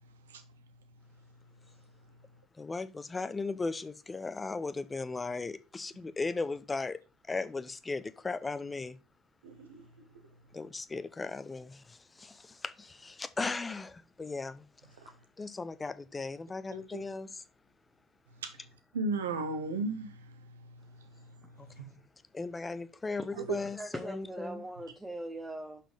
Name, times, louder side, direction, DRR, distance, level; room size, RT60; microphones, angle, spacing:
voice 1, 2.6-7.0 7.3-9.0 10.5-14.6 15.4-17.4 21.6-21.7 22.3-24.6, left 3 dB, 20° left, 0.7 m, -37 dB
voice 2, 16.7-17.0 18.4-18.5 18.9-20.1 21.8-21.9 23.4-23.6, right 3 dB, 85° right, 1.1 m, -34 dB
voice 3, 23.2-25.8, right 1 dB, 5° right, 1.0 m, -41 dB
5.8 x 5.1 x 5.1 m
hypercardioid pair, 70°, 0 cm